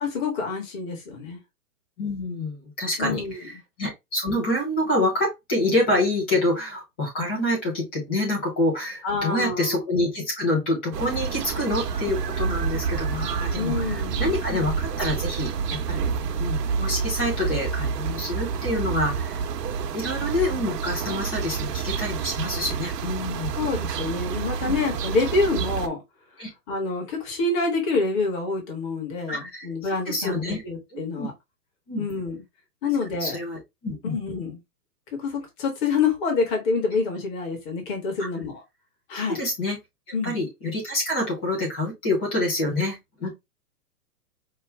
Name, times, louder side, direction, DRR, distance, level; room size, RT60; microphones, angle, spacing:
voice 1, 0.0-1.4 3.0-3.4 9.0-9.8 13.5-14.3 23.5-26.0 26.7-31.3 32.0-32.4 32.8-33.4 34.1-34.6 35.1-38.6 39.1-39.4 40.1-40.3, left 4 dB, 30° left, 1.5 m, -27 dB
voice 2, 2.0-19.4 19.9-23.5 24.7-24.8 26.4-26.5 29.3-30.6 30.9-31.3 31.9-32.0 33.2-34.2 38.2-38.3 39.1-39.8 40.2-43.3, left 1 dB, 10° left, 0.4 m, -27 dB
sound 1, 10.9-25.9, right 6 dB, 80° right, 1.0 m, -28 dB
5.6 x 2.3 x 3.2 m
hypercardioid pair, 145°, 48 cm